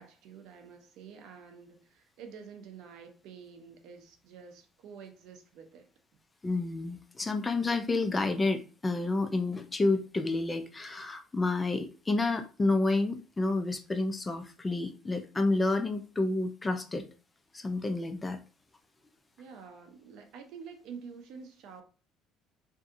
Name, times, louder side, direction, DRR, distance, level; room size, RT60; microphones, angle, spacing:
voice 1, 0.0-5.9 19.4-21.8, right 6 dB, 70° right, 0.6 m, -48 dB
voice 2, 6.4-17.0 17.5-18.4, left 2 dB, 15° left, 0.3 m, -29 dB
2.6 x 2.5 x 2.4 m
cardioid pair, 125°, 0 cm